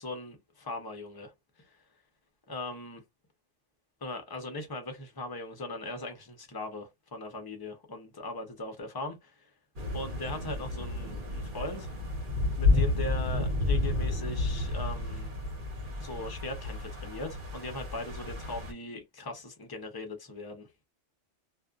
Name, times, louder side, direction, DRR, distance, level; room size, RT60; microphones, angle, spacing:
voice 1, 0.0-1.3 1.6-1.7 2.5-3.0 4.0-9.5 9.9-11.9 12.5-15.3 16.0-20.7, left 2 dB, 25° left, 0.7 m, -39 dB
sound 1, 9.8-18.7, left 2 dB, 50° right, 1.1 m, -31 dB
2.5 x 2.4 x 2.3 m
omnidirectional pair, 1.2 m